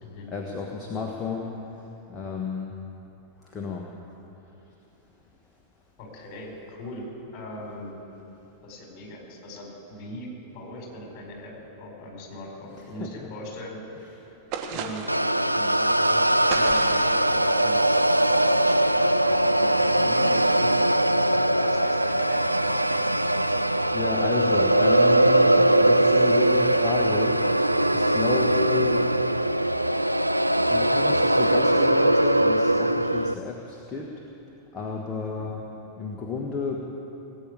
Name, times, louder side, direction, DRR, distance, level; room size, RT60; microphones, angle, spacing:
voice 1, 0.3-2.7 3.4-3.9 4.6-4.7 12.8-13.3 14.2-14.4 23.9-27.7 27.9-29.1 30.7-34.1 34.7-35.7 36.0-36.8, left 4 dB, 25° left, 0 dB, 1.5 m, -32 dB
voice 2, 6.0-7.0 7.3-7.9 8.6-13.8 14.7-15.1 15.5-17.9 18.2-20.8 21.6-23.0 35.2-35.5, left 1 dB, 40° left, 0 dB, 4.8 m, -40 dB
sound 1, 14.5-15.3 16.5-17.2, right 6 dB, 45° right, 1.5 m, -33 dB
sound 2, 15.1-33.3, right 1 dB, 90° right, 0.3 m, -21 dB
19.0 x 8.9 x 8.4 m, 3.0 s
figure-of-eight pair, 90°, 0 cm